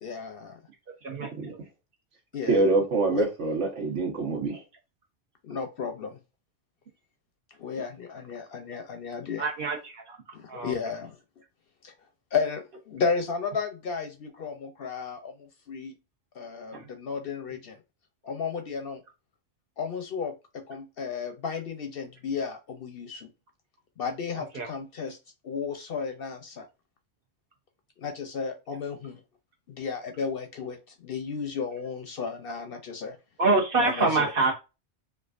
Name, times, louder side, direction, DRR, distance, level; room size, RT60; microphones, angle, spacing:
voice 1, 0.0-0.6 2.3-2.7 3.1-3.3 5.4-6.2 7.6-9.5 10.3-11.2 11.8-11.9 12.3-15.9 16.4-17.8 18.2-19.0 19.8-23.3 24.0-25.2 25.4-26.7 28.0-29.2 29.7-33.2 33.8-34.3, left 5 dB, 60° left, 6 dB, 0.7 m, -33 dB
voice 2, 1.0-1.6 9.4-10.0 10.5-10.7 24.5-24.7 33.4-34.5, right 3 dB, 50° right, 2 dB, 1.1 m, -25 dB
voice 3, 2.5-4.6, right 3 dB, 75° right, 0 dB, 1.5 m, -25 dB
4.5 x 2.4 x 2.4 m, 0.28 s
omnidirectional pair, 1.3 m